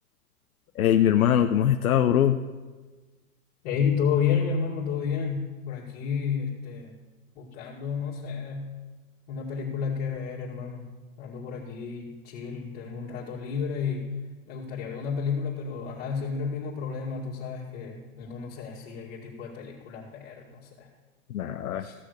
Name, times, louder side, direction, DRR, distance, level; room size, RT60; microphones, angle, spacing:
voice 1, 0.8-2.4 21.3-21.9, left 10 dB, 80° left, 7 dB, 0.8 m, -22 dB
voice 2, 3.6-6.9 7.4-8.7 9.3-10.9 11.2-14.1 14.5-20.9 21.8-22.0, left 6 dB, 45° left, -5 dB, 2.3 m, -31 dB
15.0 x 6.4 x 6.7 m, 1.3 s
hypercardioid pair, 135°, 43 cm